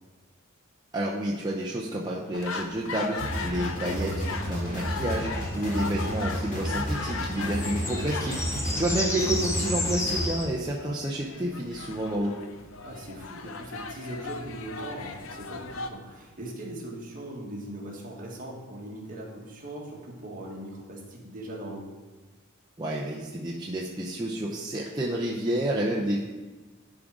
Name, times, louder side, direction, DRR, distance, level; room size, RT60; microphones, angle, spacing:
voice 1, 0.9-8.4 8.7-12.4 22.8-26.2, right 1 dB, 20° right, -4 dB, 0.7 m, -30 dB
sound 1, 2.3-15.9, left 4 dB, 75° left, 0.6 m, -38 dB
sound 2, 3.2-10.2, equal, 40° left, 2.2 m, -32 dB
sound 3, 5.3-10.5, left 2 dB, 15° left, 0.8 m, -34 dB
voice 2, 8.5-8.8 12.8-21.9, right 1 dB, 45° right, -2 dB, 1.7 m, -40 dB
11.0 x 3.8 x 4.8 m, 1.2 s
head